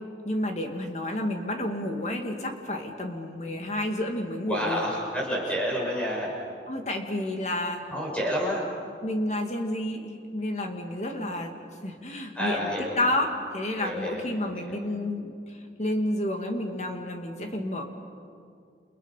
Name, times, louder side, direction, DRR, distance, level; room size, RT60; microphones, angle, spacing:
voice 1, 0.2-4.9 6.7-7.8 9.0-17.8, left 1 dB, 40° left, 3 dB, 2.4 m, -30 dB
voice 2, 4.5-6.3 7.9-8.6 12.3-13.1 13.8-14.8, equal, 5° left, -4 dB, 6.8 m, -29 dB
30.0 x 29.0 x 5.8 m, 2.3 s
head